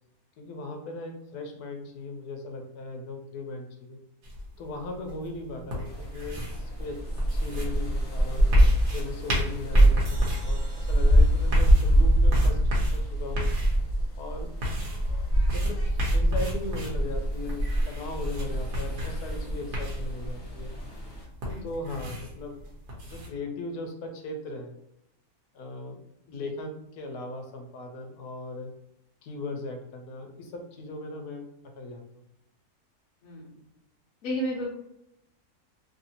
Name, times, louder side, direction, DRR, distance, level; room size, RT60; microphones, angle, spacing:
voice 1, 0.4-4.0 4.6-7.0 7.3-8.5 8.9-12.6 12.9-13.5 14.2-14.5 15.5-20.7 21.6-22.6 23.0-24.7 25.5-26.0 26.3-28.7 29.2-31.5 31.8-32.0, left 2 dB, 90° left, 4 dB, 1.1 m, -38 dB
sound 1, 4.2-23.3, left 1 dB, 65° right, 1.2 m, -36 dB
sound 2, 5.9-21.2, right 1 dB, 40° left, 0.5 m, -24 dB
sound 3, 10.0-13.3, right 2 dB, 85° right, 0.3 m, -52 dB
voice 2, 33.2-33.5 34.2-34.8, equal, 65° left, -5 dB, 1.1 m, -33 dB
3.1 x 2.6 x 2.7 m, 0.81 s
omnidirectional pair, 1.6 m